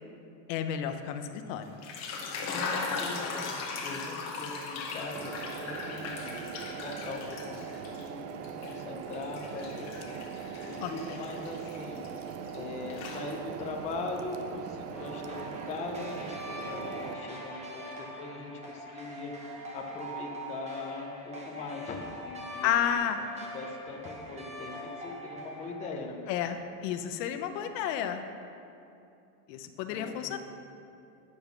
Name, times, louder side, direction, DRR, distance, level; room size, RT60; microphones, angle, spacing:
voice 1, 0.5-1.6 10.8-11.2 22.6-23.2 26.3-28.2 29.5-30.4, left 9 dB, 85° left, 7 dB, 0.9 m, -31 dB
sound 1, 1.7-8.1 8.4-12.6 12.9-13.7, left 4 dB, 35° left, 1.0 m, -38 dB
voice 2, 2.5-5.3 5.6-8.2 8.6-12.1 12.5-19.3 19.7-22.7 23.2-23.3 23.5-26.2 29.9-30.4, left 3 dB, 15° left, 0 dB, 0.5 m, -41 dB
sound 2, 5.1-17.1, right 7 dB, 70° right, 0.8 m, -41 dB
sound 3, 14.9-25.7, equal, 15° right, 1.0 m, -43 dB
9.4 x 5.3 x 6.0 m, 2.7 s
cardioid pair, 165°, 48 cm